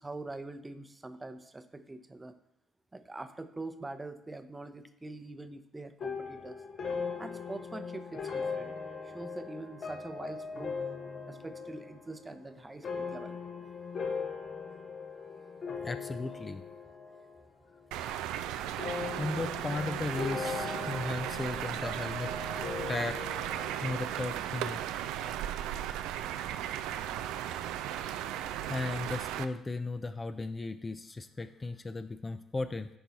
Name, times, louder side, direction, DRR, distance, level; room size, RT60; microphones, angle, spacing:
voice 1, 0.0-2.3 2.9-6.5 7.2-8.7 9.1-10.8 11.3-13.3 25.2-25.4 28.6-28.7, right 2 dB, 20° right, 10 dB, 0.8 m, -44 dB
sound 1, 6.0-17.5 17.7-18.3 18.8-24.1, left 5 dB, 50° left, 1.2 m, -39 dB
voice 2, 15.8-16.6 19.2-22.3 22.6-23.2 23.8-24.8 28.7-32.9, left 3 dB, 25° left, 10 dB, 0.5 m, -36 dB
sound 2, 17.9-29.4, right 11 dB, 75° right, 0.4 m, -36 dB
10.0 x 4.6 x 4.1 m, 0.89 s
hypercardioid pair, 50°, 0 cm